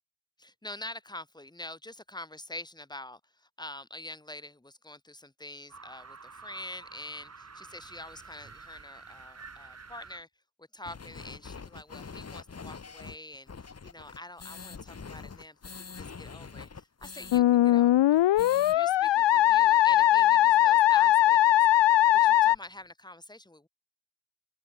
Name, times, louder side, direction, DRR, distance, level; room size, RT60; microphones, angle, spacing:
voice 1, 0.4-10.3 10.6-18.2 18.7-21.6 22.1-23.7, left 1 dB, 10° left, 3.4 m, -45 dB
sound 1, 5.7-10.2, right 4 dB, 30° right, 6.9 m, -49 dB
sound 2, 10.8-17.4 17.7-17.8 18.1-18.8, left 5 dB, 30° left, 2.1 m, -44 dB
Musical instrument, 17.3-22.6, left 14 dB, 60° left, 0.6 m, -20 dB
open air
wide cardioid pair, 150°, 50 cm